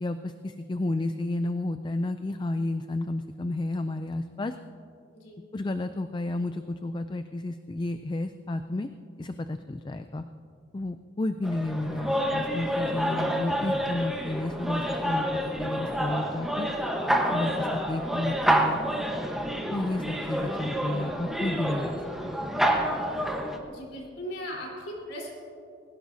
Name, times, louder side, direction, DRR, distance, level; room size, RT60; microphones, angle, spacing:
voice 1, 0.0-4.5 5.5-8.9 9.2-10.2 10.7-15.3 15.6-16.7 17.3-18.8 19.7-22.0, left 2 dB, 25° left, 9 dB, 0.4 m, -31 dB
sound 1, 11.4-23.6, equal, ahead, 1.1 m, -28 dB
voice 2, 23.7-25.3, equal, 80° left, -3 dB, 4.1 m, -38 dB
21.0 x 17.5 x 2.7 m, 2.4 s
head